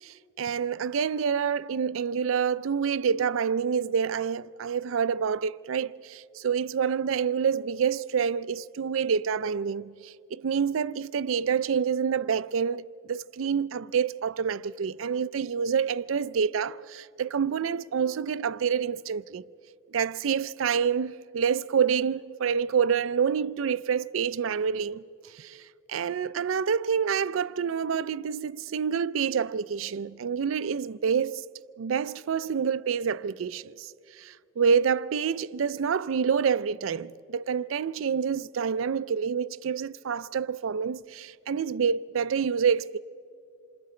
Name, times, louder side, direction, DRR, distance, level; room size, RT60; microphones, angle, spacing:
voice 1, 0.0-19.4 19.9-25.0 25.3-25.6 25.9-31.4 31.8-33.9 34.2-43.0, right 7 dB, 90° right, 0.4 m, -27 dB
27.5 x 25.0 x 4.3 m
head